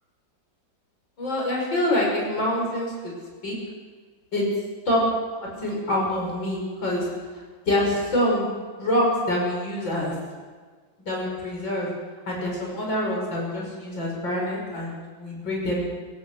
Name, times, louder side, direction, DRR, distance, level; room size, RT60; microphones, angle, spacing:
voice 1, 1.2-2.9 3.4-3.6 4.3-4.4 4.9-5.0 5.4-7.1 7.7-8.5 8.8-10.1 11.0-11.9 12.3-15.9, left 1 dB, 75° left, -2 dB, 6.6 m, -25 dB
27.0 x 16.5 x 6.4 m, 1.5 s
omnidirectional pair, 2.1 m